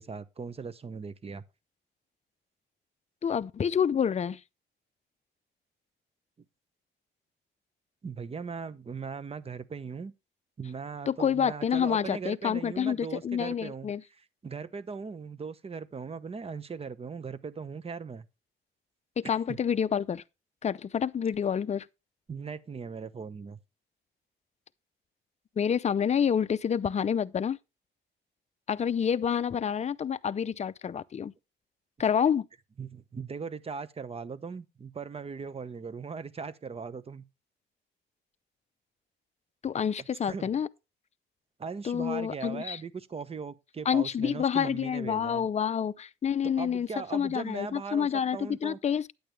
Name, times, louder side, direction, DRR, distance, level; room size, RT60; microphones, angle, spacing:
voice 1, 0.0-1.4 8.0-10.1 10.6-13.9 14.4-18.3 19.2-19.6 22.3-23.6 32.8-37.2 40.3-40.6 41.6-45.5 46.4-48.8, right 5 dB, 30° right, 0.9 m, -39 dB
voice 2, 3.2-4.4 11.1-14.0 19.2-20.2 20.6-21.9 25.6-27.6 28.7-31.3 32.0-32.5 39.6-40.7 41.8-42.8 43.9-49.1, left 8 dB, 35° left, 0.5 m, -28 dB
9.4 x 8.7 x 3.3 m
cardioid pair, 90°, 20 cm